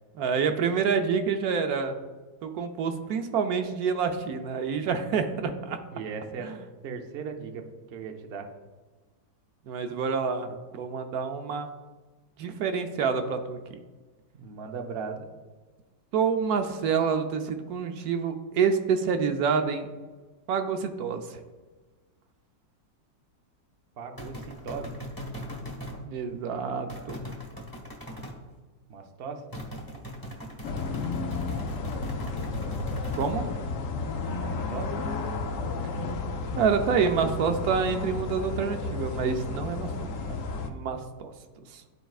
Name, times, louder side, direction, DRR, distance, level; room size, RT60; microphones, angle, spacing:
voice 1, 0.2-1.9 2.4-5.8 6.4-6.5 9.7-11.7 12.4-13.8 16.1-19.9 20.5-21.4 26.0-27.2 33.2-33.5 36.6-40.4 40.7-41.3 41.7-41.8, right 6 dB, 70° right, 7 dB, 1.0 m, -27 dB
voice 2, 5.9-6.5 6.8-8.5 14.3-15.3 24.0-25.0 28.9-29.4 34.3-34.9, right 5 dB, 85° right, 4 dB, 0.5 m, -38 dB
sound 1, 24.2-26.0 26.9-28.4 29.5-33.4, left 1 dB, 15° left, 0.9 m, -39 dB
sound 2, 30.6-40.7, left 3 dB, 65° left, 0.8 m, -32 dB
12.5 x 4.5 x 2.4 m, 1.3 s
omnidirectional pair, 1.9 m